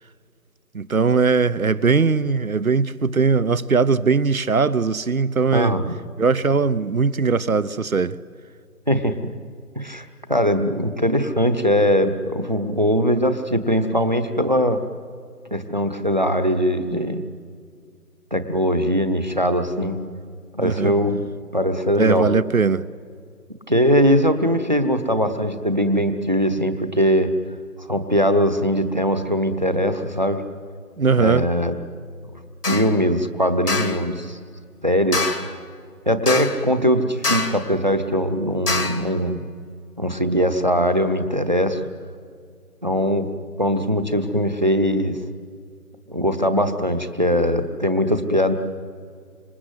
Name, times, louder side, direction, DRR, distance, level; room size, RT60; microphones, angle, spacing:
voice 1, 0.7-5.7 6.2-8.2 20.6-21.0 22.0-22.8 31.0-31.5, right 5 dB, 60° right, 0.9 m, -20 dB
voice 2, 5.5-6.0 8.9-9.3 9.7-14.8 15.5-17.2 18.3-20.0 20.5-21.2 21.5-22.3 23.7-27.3 27.8-30.4 31.2-31.8 32.6-34.4 34.8-35.2 36.1-39.4 40.0-41.8 42.8-43.3 43.6-45.2 46.1-48.5, equal, 30° right, 1.0 m, -21 dB
sound 1, 32.6-33.0 33.7-34.1 35.1-35.6 36.3-36.7 37.2-37.7 38.7-39.1, left 3 dB, 75° left, 2.3 m, -25 dB
26.5 x 24.0 x 8.0 m
figure-of-eight pair, 180°, 47 cm